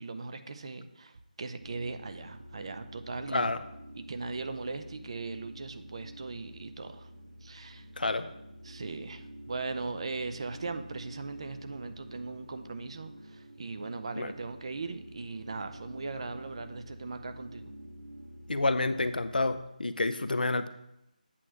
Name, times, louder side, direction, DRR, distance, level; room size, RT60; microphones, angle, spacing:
voice 1, 0.0-3.6 4.0-7.1 7.4-7.9 8.6-17.7, right 3 dB, 40° right, 9 dB, 0.6 m, -39 dB
sound 1, 1.5-19.6, equal, 55° right, 1.5 m, -49 dB
voice 2, 18.5-20.7, left 2 dB, 80° left, 11 dB, 0.6 m, -29 dB
8.4 x 3.3 x 6.1 m, 0.85 s
figure-of-eight pair, 165°, 5 cm